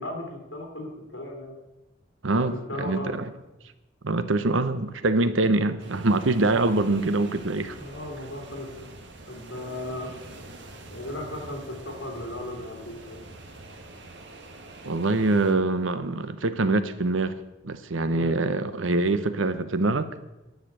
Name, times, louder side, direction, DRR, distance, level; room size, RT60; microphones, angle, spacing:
voice 1, 0.0-1.5 2.3-2.4 2.7-3.2 7.8-8.9 9.3-10.1 10.9-13.2 18.1-18.3, left 1 dB, 70° left, 2 dB, 3.1 m, -36 dB
voice 2, 2.2-3.3 4.0-7.8 14.8-17.4 17.6-20.1, right 2 dB, 80° right, 12 dB, 0.9 m, -24 dB
sound 1, 5.8-15.5, right 2 dB, 65° right, 1.5 m, -45 dB
10.5 x 6.7 x 8.1 m, 1.0 s
head